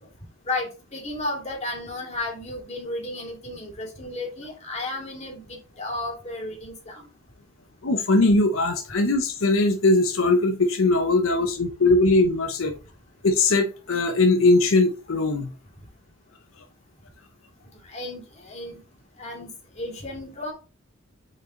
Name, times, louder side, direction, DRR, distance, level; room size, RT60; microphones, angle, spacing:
voice 1, 0.4-7.1 17.8-18.8 19.2-20.5, left 2 dB, 35° left, 2.4 m, -33 dB
voice 2, 7.8-12.7 13.2-15.5, left 2 dB, 85° left, 0.9 m, -20 dB
5.0 x 4.8 x 3.9 m
head